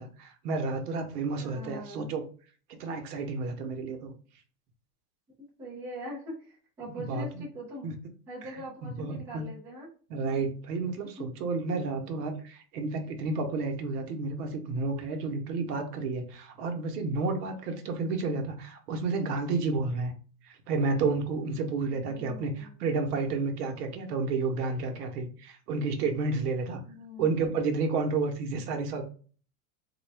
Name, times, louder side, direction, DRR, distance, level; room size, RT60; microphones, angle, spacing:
voice 1, 0.0-2.2 2.7-4.1 7.0-7.4 7.8-7.9 8.4-8.5 8.8-9.4 10.1-20.1 20.4-26.8 27.2-29.0, right 3 dB, 80° right, 5 dB, 0.9 m, -31 dB
voice 2, 1.4-2.1 5.6-7.9 8.3-9.9 21.9-22.8 26.9-27.6, equal, 5° right, -5 dB, 0.4 m, -42 dB
3.7 x 2.3 x 3.3 m, 0.41 s
supercardioid pair, 160°, 46 cm